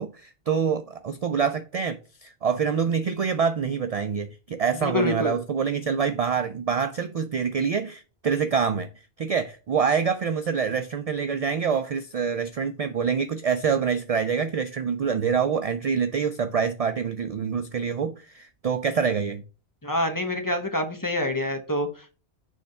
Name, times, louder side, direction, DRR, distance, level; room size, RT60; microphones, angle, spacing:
voice 1, 0.0-8.9 9.2-19.4, right 6 dB, 60° right, 0.4 m, -26 dB
voice 2, 4.7-5.4 19.8-22.2, left 1 dB, 20° left, 0.8 m, -27 dB
6.4 x 3.3 x 5.3 m
omnidirectional pair, 1.1 m